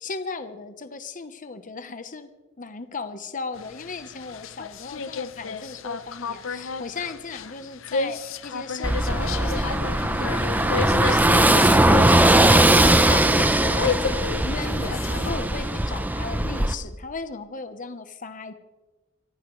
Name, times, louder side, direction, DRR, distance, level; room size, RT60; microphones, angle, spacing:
voice 1, 0.0-2.3 2.6-18.5, left 4 dB, 40° left, 10 dB, 1.0 m, -36 dB
sound 1, 3.6-15.3, left 5 dB, 80° left, 0.7 m, -33 dB
Car passing by / Engine, 8.8-16.7, right 1 dB, 10° right, 0.7 m, -19 dB
26.0 x 14.5 x 3.2 m, 1.1 s
head